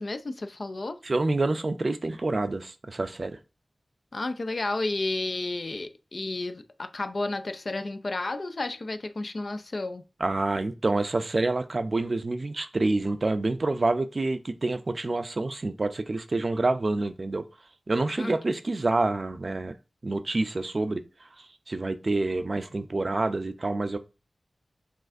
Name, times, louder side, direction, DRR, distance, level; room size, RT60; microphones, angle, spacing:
voice 1, 0.0-1.0 4.1-10.0 18.2-18.4, left 2 dB, 60° left, 0.4 m, -32 dB
voice 2, 1.0-3.4 10.2-17.4 17.9-19.8 20.0-21.0 21.4-24.0, right 2 dB, 55° right, 0.4 m, -27 dB
6.3 x 2.5 x 2.5 m
cardioid pair, 45°, 0 cm